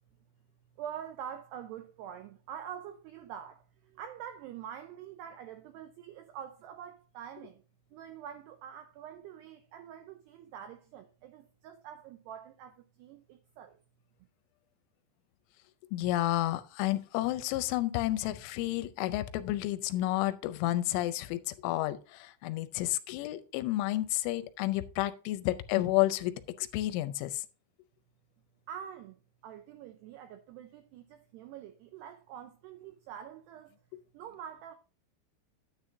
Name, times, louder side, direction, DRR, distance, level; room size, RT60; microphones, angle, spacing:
voice 1, 0.8-7.6 7.9-13.8 28.7-29.2 29.4-33.8 34.1-34.8, right 9 dB, 90° right, 2.3 m, -45 dB
voice 2, 15.9-27.4, left 15 dB, 85° left, 3.0 m, -31 dB
9.8 x 9.6 x 2.6 m
omnidirectional pair, 5.6 m